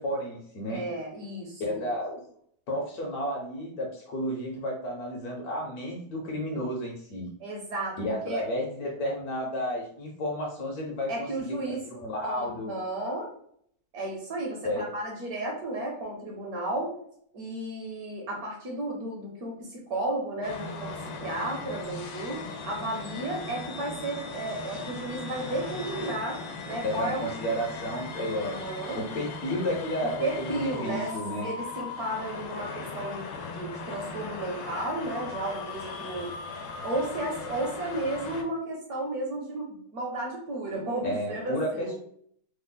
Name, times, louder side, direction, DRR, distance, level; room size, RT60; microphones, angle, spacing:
voice 1, 0.0-0.8 1.6-2.2 2.7-7.3 8.0-12.7 14.6-14.9 26.8-28.6 29.0-31.5 41.0-42.0, equal, 65° left, -1 dB, 1.1 m, -32 dB
voice 2, 0.7-1.8 7.4-8.4 11.1-11.8 12.2-13.3 13.9-16.9 17.3-20.9 21.2-26.4 26.7-27.2 28.2-29.0 30.2-31.1 31.4-36.3 36.8-42.0, right 1 dB, 60° right, -1 dB, 1.1 m, -33 dB
sound 1, 20.4-38.4, left 4 dB, 85° left, 1.3 m, -38 dB
3.3 x 2.0 x 3.7 m, 0.65 s
omnidirectional pair, 2.0 m